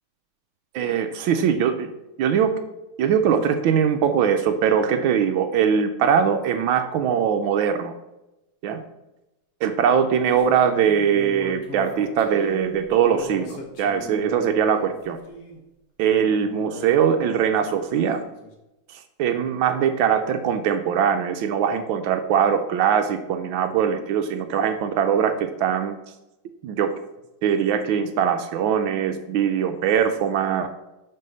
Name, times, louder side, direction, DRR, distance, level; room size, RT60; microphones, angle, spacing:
voice 1, 0.7-1.9 2.2-2.5 3.0-7.9 8.6-8.8 9.6-15.2 16.0-18.2 18.9-25.9 26.6-26.9 27.4-30.7, right 8 dB, 75° right, 8 dB, 1.3 m, -21 dB
sound 1, 10.3-15.6 16.2-18.5, left 1 dB, 50° left, 1.4 m, -39 dB
6.0 x 5.5 x 5.4 m, 0.96 s
omnidirectional pair, 2.4 m